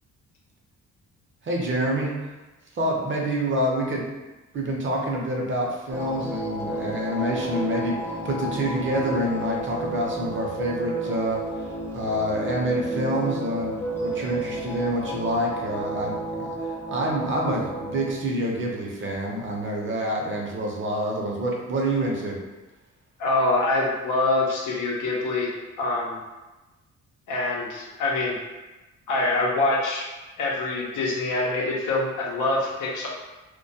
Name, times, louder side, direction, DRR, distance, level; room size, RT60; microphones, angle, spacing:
voice 1, 1.4-2.2 2.7-4.1 4.5-22.4, right 1 dB, 40° right, -1 dB, 0.6 m, -27 dB
sound 1, 5.9-18.1, right 1 dB, 10° left, 0.4 m, -32 dB
voice 2, 23.2-25.5 25.8-26.2 27.3-28.4 29.1-30.1 30.4-33.1, left 2 dB, 85° left, -3 dB, 0.7 m, -25 dB
2.2 x 2.1 x 2.7 m, 1.1 s
cardioid pair, 90°, 30 cm